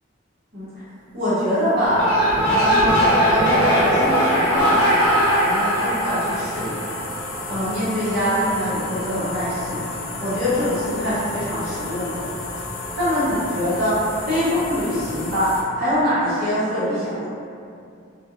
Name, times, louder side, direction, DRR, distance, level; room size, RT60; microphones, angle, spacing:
voice 1, 1.1-2.1 2.4-7.0 7.5-9.8 10.2-12.2 12.9-17.3, equal, 45° right, -14 dB, 0.7 m, -24 dB
sound 1, 1.2-15.6, left 2 dB, 65° left, 0.4 m, -33 dB
sound 2, 1.8-7.2, equal, 15° left, 1.0 m, -19 dB
2.3 x 2.1 x 2.8 m, 2.4 s
head